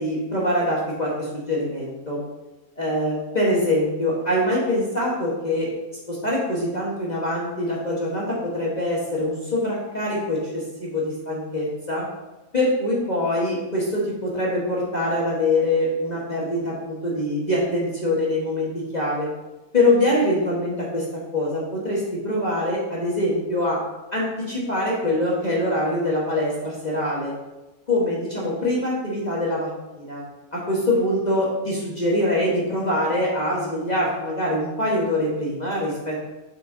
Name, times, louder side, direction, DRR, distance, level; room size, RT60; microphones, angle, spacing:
voice 1, 0.0-2.2 2.8-5.7 6.1-12.0 12.5-19.3 19.7-21.1 21.3-23.8 24.1-27.3 27.9-29.7 29.9-30.2 30.5-36.3, left 1 dB, 30° left, -5 dB, 1.3 m, -24 dB
6.8 x 4.8 x 3.8 m, 1.1 s
omnidirectional pair, 1.6 m